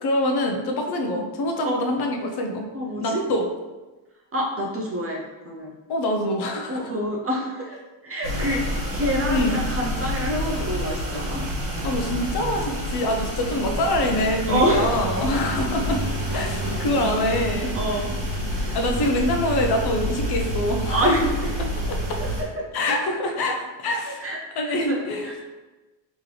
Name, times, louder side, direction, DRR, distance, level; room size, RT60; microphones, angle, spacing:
voice 1, 0.0-2.7 3.0-3.5 5.9-6.8 8.4-8.6 9.3-9.6 11.8-16.0 16.3-17.7 18.7-21.2 21.9-22.2 22.7-24.3 24.6-25.3, left 1 dB, 50° left, 3 dB, 0.6 m, -25 dB
voice 2, 2.7-3.3 4.3-5.7 6.7-11.4 14.5-15.0 17.7-18.1 18.5-18.8 20.9-21.6 22.2-22.3 22.6-22.7 24.2-25.3, equal, 30° right, -1 dB, 0.5 m, -27 dB
sound 1, 8.2-22.4, equal, 55° right, 1.2 m, -28 dB
3.2 x 3.0 x 3.8 m, 1.2 s
cardioid pair, 135°, 49 cm